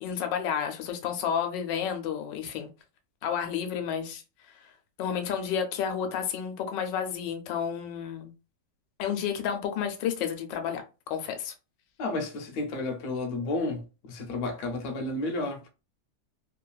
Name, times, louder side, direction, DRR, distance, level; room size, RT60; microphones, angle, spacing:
voice 1, 0.0-2.7 3.2-4.2 4.5-4.7 5.0-8.3 9.0-11.5, left 8 dB, 85° left, 1.3 m, -31 dB
voice 2, 12.0-15.7, left 2 dB, 65° left, 1.1 m, -32 dB
3.1 x 2.3 x 2.2 m
omnidirectional pair, 1.9 m